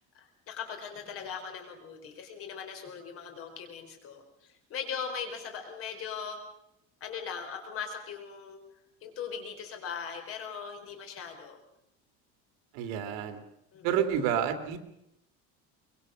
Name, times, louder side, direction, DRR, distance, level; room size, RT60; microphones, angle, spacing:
voice 1, 0.1-6.4 7.0-8.6 9.0-11.6 13.7-13.9, left 6 dB, 45° left, 5 dB, 4.5 m, -39 dB
voice 2, 12.7-13.4 13.8-14.8, right 9 dB, 75° right, 8 dB, 2.7 m, -29 dB
23.5 x 21.5 x 6.4 m, 0.85 s
cardioid pair, 165°, 32 cm